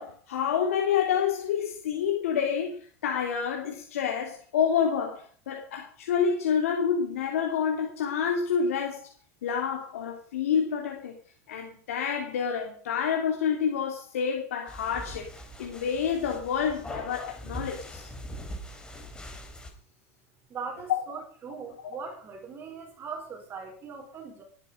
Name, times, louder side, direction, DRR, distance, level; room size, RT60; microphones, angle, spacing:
voice 1, 0.0-9.1 9.4-11.2 11.5-15.3 15.6-18.1 20.9-21.0, left 7 dB, 90° left, 3.4 m, -28 dB
sound 1, 14.7-19.7, equal, 10° left, 3.7 m, -41 dB
voice 2, 20.5-24.4, right 5 dB, 30° right, 4.6 m, -40 dB
19.5 x 10.5 x 5.3 m
supercardioid pair, 125°, 7 cm